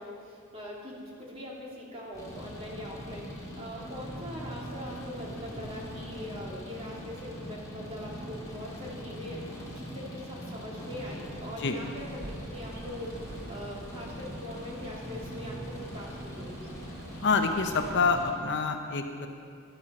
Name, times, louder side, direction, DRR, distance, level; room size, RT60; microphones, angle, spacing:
voice 1, 0.0-9.4 9.7-12.2 12.5-13.1 13.5-16.7, left 1 dB, 30° right, -4 dB, 2.5 m, -42 dB
sound 1, 2.1-18.3, equal, 15° left, 2.7 m, -41 dB
Thunder / Rain, 2.6-2.7 3.3-12.9 13.1-14.0 14.6-14.9 15.2-16.0 16.6-16.7, equal, 65° right, 1.4 m, -56 dB
birds in the woods, 12.0-18.1, right 1 dB, 50° right, 1.2 m, -49 dB
voice 2, 17.2-19.3, left 4 dB, 55° left, 6 dB, 0.7 m, -27 dB
12.5 x 11.5 x 4.2 m, 2.2 s
head